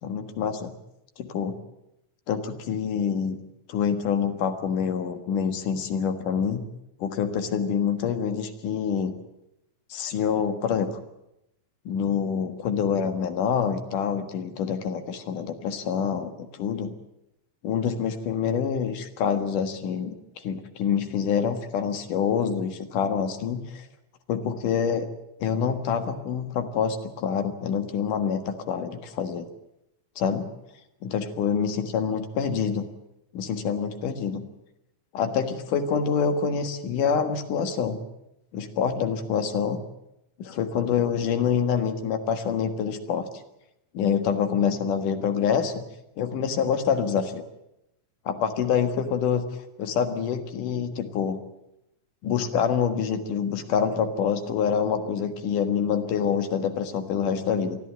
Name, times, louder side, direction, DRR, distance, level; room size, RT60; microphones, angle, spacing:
voice 1, 0.0-0.7 1.2-1.5 2.3-3.4 3.7-6.6 7.0-9.1 9.9-10.9 11.9-16.9 17.6-23.8 24.3-25.1 25.4-29.5 30.2-30.5 31.0-32.9 33.3-34.4 35.1-38.0 38.5-39.8 40.4-43.3 43.9-45.8 46.2-47.4 48.3-49.4 49.8-51.4 52.2-57.8, left 7 dB, 70° left, 8 dB, 3.1 m, -26 dB
23.0 x 14.5 x 9.2 m, 0.86 s
omnidirectional pair, 3.9 m